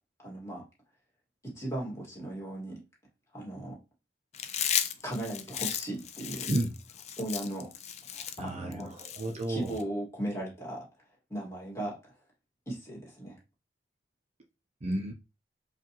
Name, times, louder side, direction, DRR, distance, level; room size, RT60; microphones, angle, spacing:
voice 1, 0.2-0.7 1.4-2.8 3.3-3.8 5.0-6.5 7.2-7.7 8.1-9.0 9.5-10.9 11.3-12.0 12.7-13.4, right 1 dB, 15° left, 1.9 m, -37 dB
Chewing mastication, 4.3-9.8, left 9 dB, 40° left, 0.4 m, -34 dB
voice 2, 8.4-9.8 14.8-15.1, right 1 dB, 35° right, 0.5 m, -32 dB
4.9 x 2.3 x 2.9 m
head